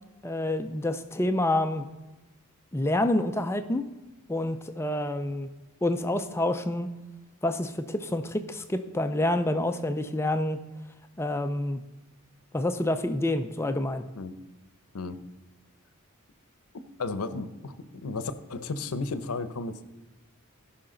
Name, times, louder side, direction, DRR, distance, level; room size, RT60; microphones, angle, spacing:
voice 1, 0.2-1.8 2.7-3.9 4.3-5.5 5.8-6.9 7.4-10.6 11.2-11.8 12.5-14.1, left 1 dB, 10° left, 8 dB, 0.4 m, -28 dB
voice 2, 17.0-19.8, left 3 dB, 85° left, 13 dB, 0.7 m, -34 dB
15.5 x 5.7 x 3.8 m, 1.1 s
head